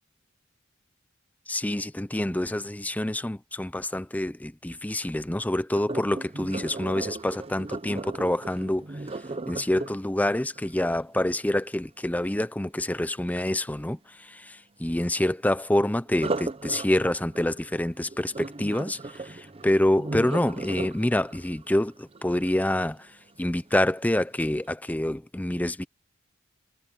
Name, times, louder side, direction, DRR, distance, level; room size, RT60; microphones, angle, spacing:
voice 1, 1.5-8.9 9.5-14.0 14.3-23.0 23.4-25.8, left 1 dB, 10° left, 0.6 m, -27 dB
Sink (filling or washing), 5.7-11.7 16.1-23.1 23.6-23.9 24.4-24.5, right 2 dB, 30° right, 0.7 m, -37 dB
head